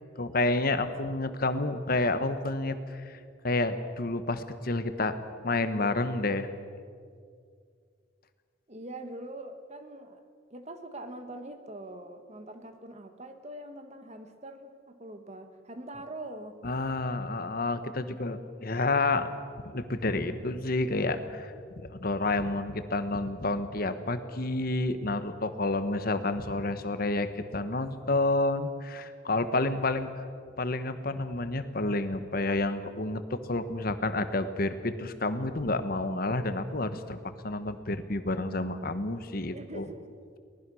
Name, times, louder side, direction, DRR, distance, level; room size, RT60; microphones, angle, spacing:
voice 1, 0.0-6.5 16.6-19.3 19.6-27.3 27.5-30.1 30.6-37.2 37.4-39.8, left 2 dB, 50° left, 10 dB, 1.3 m, -29 dB
voice 2, 8.7-10.2 10.5-16.6 39.5-40.1, right 1 dB, 35° right, 7 dB, 1.6 m, -43 dB
24.5 x 19.0 x 6.4 m, 2.2 s
head